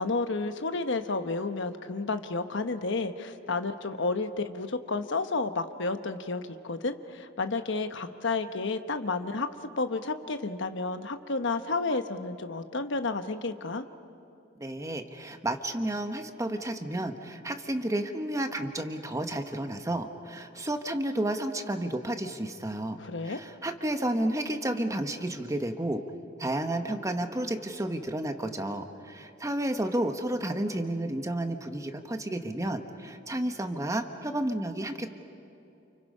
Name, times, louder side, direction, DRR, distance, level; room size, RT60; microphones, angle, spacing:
voice 1, 0.0-9.5 9.8-13.8 23.0-23.4, left 3 dB, 65° left, 8 dB, 1.1 m, -31 dB
voice 2, 14.6-23.0 23.3-26.0 26.4-35.1, right 1 dB, 15° right, 6 dB, 1.3 m, -31 dB
30.0 x 29.0 x 5.5 m, 2.8 s
head